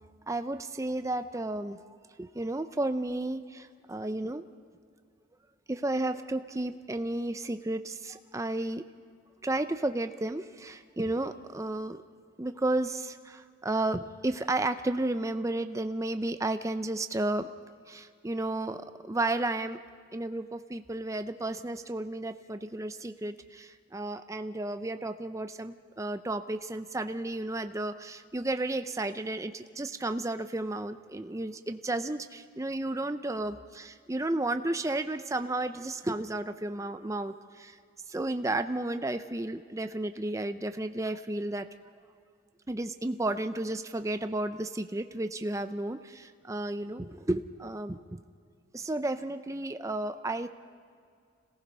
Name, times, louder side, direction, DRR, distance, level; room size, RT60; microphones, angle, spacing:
voice 1, 0.3-4.4 5.7-8.8 9.4-12.0 12.4-17.5 17.9-19.8 20.1-37.8 38.1-41.7 42.7-48.2 48.7-50.5, right 2 dB, 15° right, 9 dB, 0.5 m, -33 dB
26.5 x 18.0 x 5.5 m, 2.2 s
head